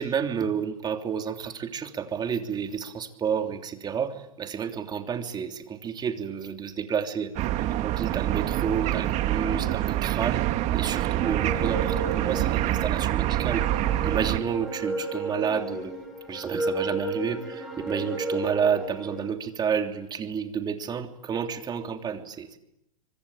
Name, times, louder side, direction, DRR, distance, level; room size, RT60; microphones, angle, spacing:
voice 1, 0.0-7.3 7.8-10.4 10.7-13.7 14.0-15.9 16.3-22.6, right 7 dB, 20° right, 5 dB, 3.2 m, -30 dB
sound 1, 7.4-14.4, right 14 dB, 40° right, 1.7 m, -26 dB
sound 2, 11.2-19.3, right 2 dB, ahead, 8.0 m, -33 dB
26.5 x 24.5 x 8.9 m, 0.82 s
hypercardioid pair, 125°, 19 cm